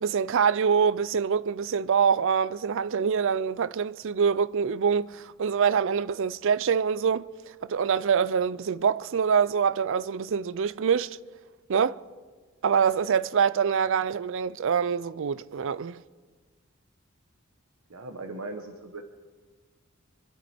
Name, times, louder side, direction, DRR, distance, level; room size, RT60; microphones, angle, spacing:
voice 1, 0.0-7.3 7.6-11.2 11.7-12.0 12.6-16.0, right 6 dB, 65° right, 0.4 m, -25 dB
voice 2, 17.9-19.0, right 2 dB, 80° right, 1.1 m, -38 dB
25.5 x 12.0 x 4.4 m
head